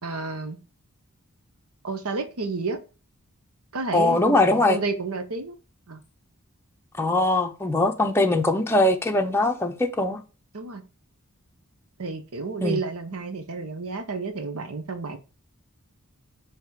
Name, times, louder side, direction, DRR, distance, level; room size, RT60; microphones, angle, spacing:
voice 1, 0.0-0.6 1.8-2.8 3.7-5.5 5.9-6.0 10.5-10.8 12.0-15.2, right 3 dB, 85° right, 1.1 m, -31 dB
voice 2, 3.9-4.8 7.0-10.2 12.6-12.8, left 2 dB, 10° left, 0.7 m, -21 dB
7.1 x 3.2 x 4.7 m
head